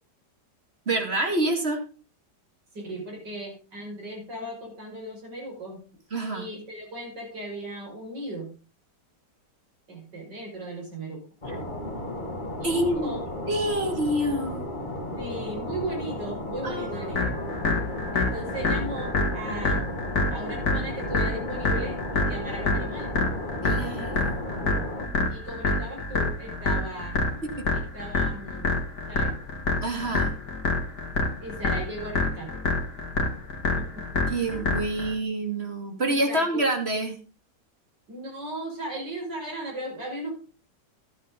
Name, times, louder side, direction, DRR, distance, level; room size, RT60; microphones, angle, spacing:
voice 1, 0.9-1.8 6.1-6.5 11.5-11.8 12.6-13.1 13.5-14.6 16.6-17.9 23.6-24.4 29.8-30.3 34.3-37.2, right 1 dB, 35° right, 4 dB, 2.7 m, -27 dB
voice 2, 2.7-5.8 6.3-8.5 9.9-11.3 12.6-13.2 15.2-17.4 18.1-19.8 20.3-23.1 25.3-27.2 27.7-28.8 29.1-29.4 31.4-32.6 33.8-33.9 34.1-34.3 34.5-34.6 36.0-36.6 38.1-40.3, right 1 dB, 75° right, 0 dB, 6.3 m, -37 dB
sound 1, 11.4-25.1, left 1 dB, 25° left, 2.3 m, -34 dB
sound 2, 17.1-35.1, left 2 dB, 55° left, 2.7 m, -27 dB
12.5 x 11.0 x 3.8 m, 0.35 s
omnidirectional pair, 1.9 m